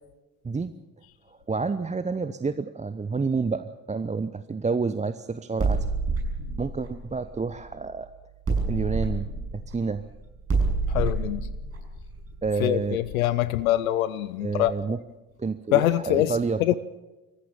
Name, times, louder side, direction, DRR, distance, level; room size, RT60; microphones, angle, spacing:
voice 1, 1.5-5.9 6.6-8.1 8.7-10.0 12.4-13.0 14.4-15.0 15.4-16.6, right 4 dB, 15° right, 0.8 m, -29 dB
sound 1, 5.6-7.9 8.5-13.1, right 3 dB, 35° right, 6.4 m, -28 dB
voice 2, 10.9-11.5 12.6-14.7 15.7-16.8, left 14 dB, 80° left, 0.6 m, -24 dB
25.5 x 15.0 x 7.3 m
figure-of-eight pair, 45°, 41 cm